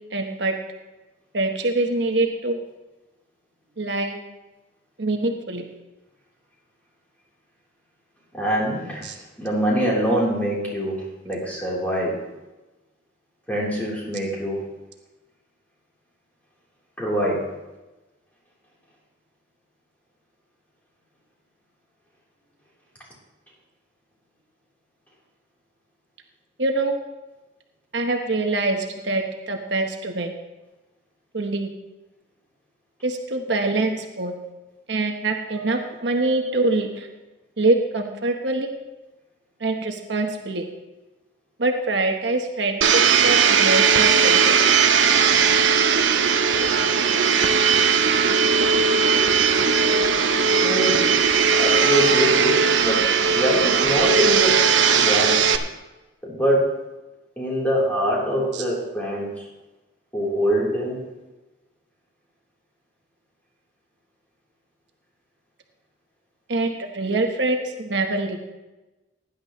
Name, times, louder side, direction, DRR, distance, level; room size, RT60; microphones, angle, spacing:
voice 1, 0.1-0.5 1.3-2.6 3.8-4.2 5.0-5.6 9.0-9.1 26.6-27.0 27.9-30.3 31.3-31.7 33.0-34.3 34.9-37.1 37.6-38.7 39.6-40.6 41.6-44.8 58.5-58.6 66.5-68.4, right 2 dB, 70° right, 4 dB, 1.1 m, -24 dB
voice 2, 8.3-9.1 9.4-12.2 13.5-14.7 17.0-17.5 35.5-36.0 36.5-36.6 49.7-51.1 51.5-55.5 56.2-56.8 57.4-59.5 60.1-61.0, equal, 10° left, -5 dB, 3.6 m, -25 dB
Domestic sounds home sounds, 42.8-55.6, right 6 dB, 85° right, 0.7 m, -18 dB
16.5 x 10.5 x 3.1 m, 1.1 s
head